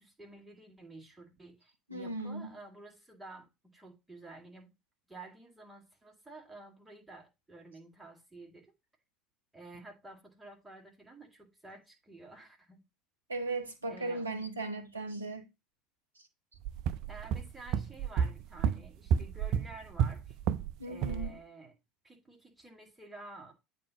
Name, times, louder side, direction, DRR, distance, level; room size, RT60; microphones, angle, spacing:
voice 1, 0.0-3.5 3.7-4.7 5.1-8.7 9.5-12.8 13.9-14.2 17.1-20.4 20.8-21.7 22.0-23.5, right 2 dB, 10° right, 2.2 m, -51 dB
voice 2, 1.9-2.5 13.3-15.5 20.8-21.4, right 2 dB, 85° right, 0.8 m, -37 dB
sound 1, 16.6-20.7 21.0-21.3, right 8 dB, 55° right, 0.3 m, -31 dB
8.3 x 2.8 x 5.2 m
figure-of-eight pair, 65°, 0 cm